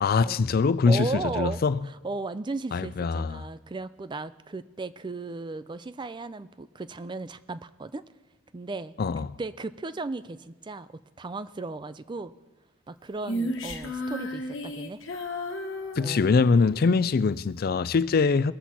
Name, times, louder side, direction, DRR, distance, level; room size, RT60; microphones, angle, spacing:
voice 1, 0.0-1.8 2.7-3.4 9.0-9.4 16.0-18.5, left 4 dB, 50° left, 0.4 m, -23 dB
voice 2, 0.9-8.0 8.5-8.9 9.4-10.9 11.2-12.3 12.9-15.0 15.9-16.4, right 3 dB, 25° right, 0.4 m, -35 dB
Female singing, 13.2-16.8, left 1 dB, 85° left, 1.3 m, -33 dB
21.5 x 7.4 x 4.2 m
head